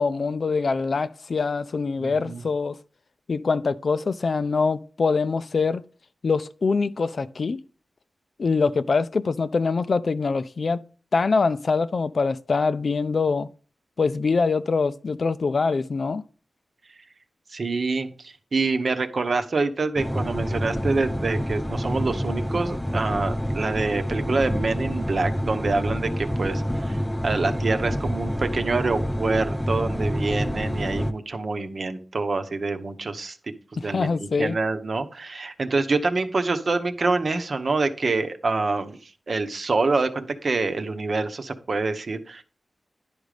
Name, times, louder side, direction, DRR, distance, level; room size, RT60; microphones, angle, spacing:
voice 1, 0.0-2.8 3.3-5.8 6.2-7.6 8.4-10.8 11.1-13.5 14.0-16.2 33.8-34.6, left 4 dB, 55° left, 0.5 m, -24 dB
voice 2, 2.0-2.4 16.9-17.0 17.5-33.4 33.8-42.4, right 3 dB, 50° right, 1.0 m, -26 dB
sound 1, 20.0-31.1, equal, 5° left, 0.6 m, -27 dB
11.0 x 5.2 x 5.0 m
wide cardioid pair, 130°, 0 cm